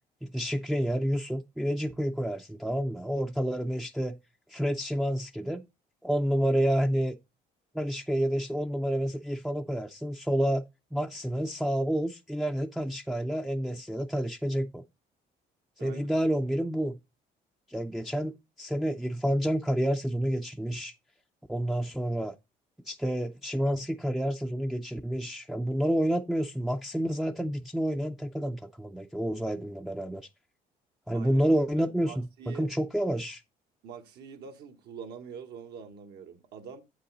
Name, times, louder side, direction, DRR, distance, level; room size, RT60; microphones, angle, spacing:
voice 1, 0.2-4.2 4.5-5.7 6.0-7.2 7.7-10.6 10.9-14.8 15.8-17.0 17.7-20.9 21.5-22.3 22.9-30.2 31.1-33.4, equal, ahead, 0.4 m, -29 dB
voice 2, 31.1-31.5 31.8-32.7 33.8-36.8, right 6 dB, 75° right, 1.4 m, -45 dB
8.0 x 5.5 x 4.0 m
cardioid pair, 110°, 17 cm